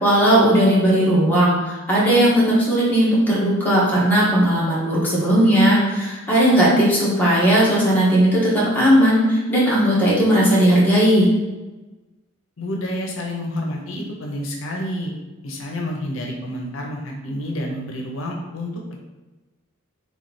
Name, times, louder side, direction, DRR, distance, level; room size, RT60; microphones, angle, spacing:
voice 1, 0.0-11.3, equal, 10° left, -8 dB, 1.3 m, -17 dB
voice 2, 12.6-15.1 15.4-19.0, left 1 dB, 75° left, 0 dB, 0.7 m, -29 dB
3.4 x 3.1 x 4.1 m, 1.1 s
head